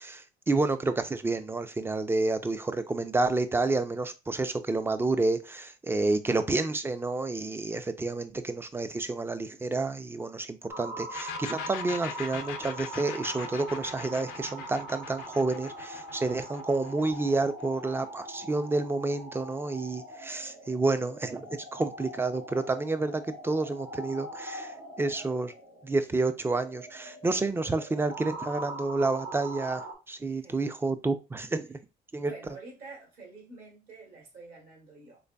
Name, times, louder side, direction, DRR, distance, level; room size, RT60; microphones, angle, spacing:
voice 1, 0.0-25.5 25.8-31.8 32.1-32.3, right 3 dB, 15° right, 11 dB, 0.4 m, -29 dB
sound 1, 10.7-29.9, right 2 dB, 80° right, 2.0 m, -42 dB
sound 2, 11.1-18.6, left 10 dB, 80° left, 0.5 m, -42 dB
voice 2, 30.2-30.6 32.1-35.2, right 4 dB, 60° right, -1 dB, 2.0 m, -47 dB
3.9 x 3.2 x 2.2 m, 0.27 s
cardioid pair, 110°, 17 cm